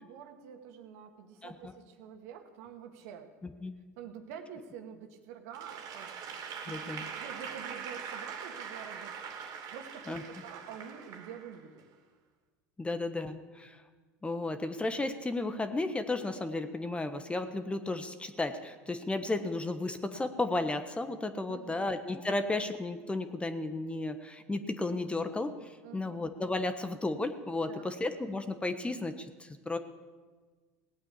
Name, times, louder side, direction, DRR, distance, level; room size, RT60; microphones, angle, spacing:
voice 1, 0.0-3.3 4.0-9.1 9.7-11.9 12.9-13.0 21.5-21.9 25.8-26.2 27.6-27.9, right 8 dB, 75° right, 5 dB, 2.0 m, -47 dB
voice 2, 1.4-1.7 3.6-3.7 6.7-7.1 10.1-10.2 12.8-13.8 14.2-29.8, left 2 dB, 15° left, 9 dB, 1.2 m, -34 dB
Applause / Crowd, 5.5-11.8, right 7 dB, 50° right, 2.7 m, -42 dB
17.5 x 8.7 x 8.3 m, 1.4 s
hypercardioid pair, 95°, 8 cm